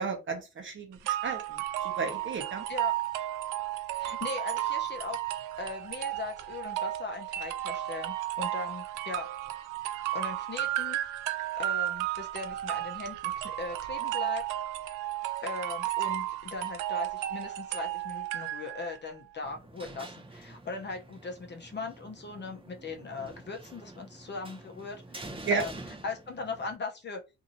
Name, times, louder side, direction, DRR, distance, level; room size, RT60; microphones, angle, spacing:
voice 1, 0.0-1.6 1.8-2.6 25.4-25.6, right 4 dB, 40° right, 1.0 m, -33 dB
sound 1, 1.1-19.0, right 14 dB, 90° right, 0.5 m, -33 dB
voice 2, 4.0-5.2 5.6-9.3 10.1-11.0 11.5-14.4 15.4-25.8 26.0-27.2, left 4 dB, 35° left, 0.7 m, -39 dB
sound 2, 19.4-26.8, right 2 dB, 20° right, 0.6 m, -47 dB
2.7 x 2.7 x 2.6 m
cardioid pair, 90°, 30 cm